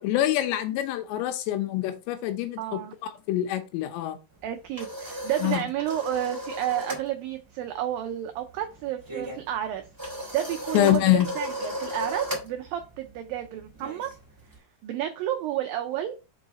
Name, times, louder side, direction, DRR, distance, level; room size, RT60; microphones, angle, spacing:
voice 1, 0.0-4.2 5.4-5.6 10.7-11.3, left 13 dB, 90° left, 3.1 m, -25 dB
voice 2, 2.6-2.9 4.4-9.9 10.3-11.0 11.4-14.1 14.8-16.1, right 12 dB, 90° right, 2.0 m, -31 dB
sound 1, 4.4-7.1 7.3-7.6 7.9-14.6, equal, 10° right, 1.0 m, -36 dB
5.8 x 4.7 x 4.0 m
omnidirectional pair, 4.9 m